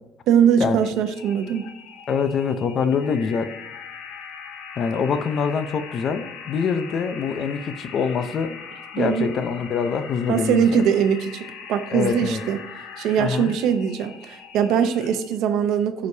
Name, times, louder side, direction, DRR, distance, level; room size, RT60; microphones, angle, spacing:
voice 1, 0.3-1.7 9.0-9.3 10.3-12.6 13.0-16.1, right 8 dB, 75° right, 9 dB, 0.7 m, -21 dB
sound 1, 0.8-15.4, left 6 dB, 85° left, 1.0 m, -40 dB
voice 2, 2.1-3.5 4.8-8.6 8.9-10.6 11.9-12.4 13.2-13.5, left 6 dB, 45° left, 11 dB, 0.6 m, -24 dB
14.0 x 5.1 x 2.7 m, 0.88 s
cardioid pair, 135°, 0 cm